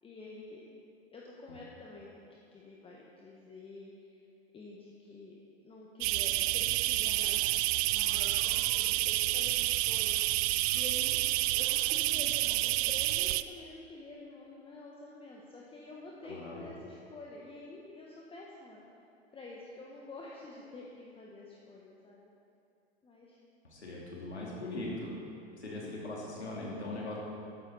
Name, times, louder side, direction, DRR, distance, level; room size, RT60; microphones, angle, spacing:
voice 1, 0.0-0.6 1.1-4.2 4.5-5.4 5.6-7.5 7.9-10.2 10.7-11.2 11.5-18.8 19.3-22.3 23.0-23.4, left 2 dB, 15° left, -3 dB, 1.6 m, -48 dB
sound 1, 6.0-13.4, right 17 dB, 35° right, 0.4 m, -29 dB
voice 2, 16.2-16.7 23.6-25.1 25.6-27.2, left 2 dB, 85° left, -4 dB, 2.6 m, -40 dB
14.0 x 13.0 x 4.3 m, 2.6 s
figure-of-eight pair, 95°, 32 cm